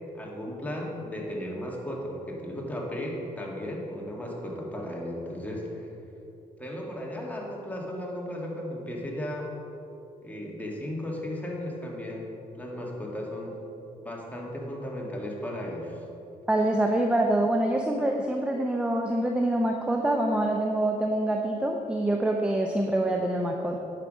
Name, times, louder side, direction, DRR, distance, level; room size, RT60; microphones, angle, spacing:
voice 1, 0.1-5.9 6.6-9.5 10.2-12.3 12.5-13.6 14.0-16.0, left 1 dB, 10° left, -2 dB, 2.2 m, -35 dB
voice 2, 16.5-23.8, right 1 dB, 5° right, 2 dB, 0.8 m, -25 dB
9.9 x 6.0 x 5.4 m, 2.8 s
cardioid pair, 75°, 16 cm